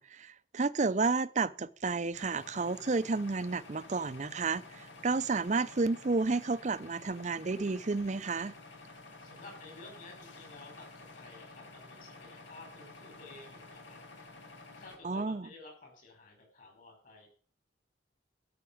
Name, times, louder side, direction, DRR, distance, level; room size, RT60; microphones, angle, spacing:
voice 1, 0.0-8.5 15.0-15.5, right 3 dB, 40° right, 0.5 m, -31 dB
sound 1, 2.1-15.0, left 3 dB, 90° left, 2.2 m, -51 dB
voice 2, 9.2-14.0 14.7-17.3, left 3 dB, 45° left, 5.0 m, -52 dB
12.5 x 6.0 x 8.6 m
head